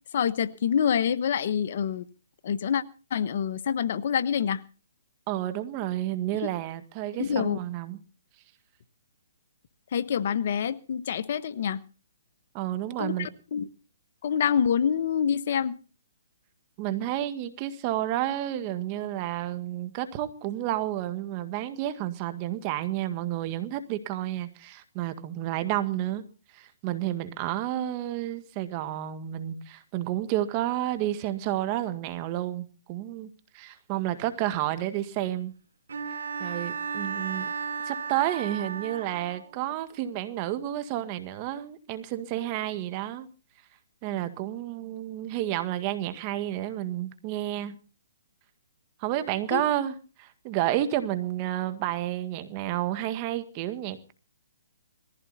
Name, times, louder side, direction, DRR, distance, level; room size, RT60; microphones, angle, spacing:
voice 1, 0.1-2.1 2.4-2.8 3.1-4.6 7.2-7.6 9.9-11.8 13.0-13.7 14.2-15.7 49.5-49.6, left 8 dB, 50° left, 13 dB, 1.1 m, -26 dB
voice 2, 5.3-8.0 12.5-13.3 16.8-26.3 26.5-35.5 36.4-37.5 37.9-43.3 44.0-47.8 49.0-54.1, right 13 dB, 30° right, 11 dB, 1.7 m, -30 dB
Bowed string instrument, 35.9-39.6, right 6 dB, 75° right, 3.3 m, -34 dB
20.0 x 15.0 x 4.2 m, 0.37 s
hypercardioid pair, 150°, 0 cm